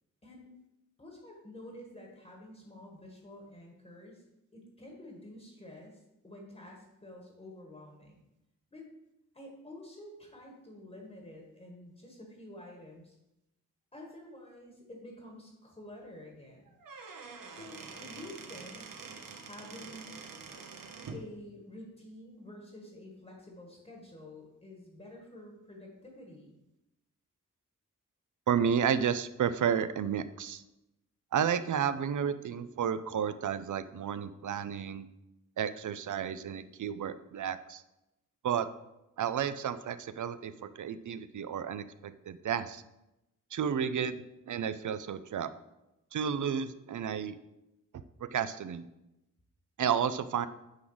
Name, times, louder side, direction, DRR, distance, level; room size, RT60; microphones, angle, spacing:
voice 1, 1.0-4.2 4.5-8.2 8.7-8.8 9.3-13.2 13.9-16.6 17.5-18.8 19.4-20.2 21.1-26.5, left 1 dB, 20° left, 0 dB, 1.4 m, -49 dB
Squeak / Wood, 16.7-21.3, right 4 dB, 90° right, 1.1 m, -46 dB
voice 2, 28.5-30.6 31.3-35.1 35.6-37.8 38.4-38.7 39.2-42.8 43.5-45.5 46.1-47.4 48.3-48.8 49.8-50.5, right 8 dB, 70° right, 13 dB, 0.5 m, -32 dB
9.5 x 3.9 x 6.2 m, 0.92 s
wide cardioid pair, 170°, 32 cm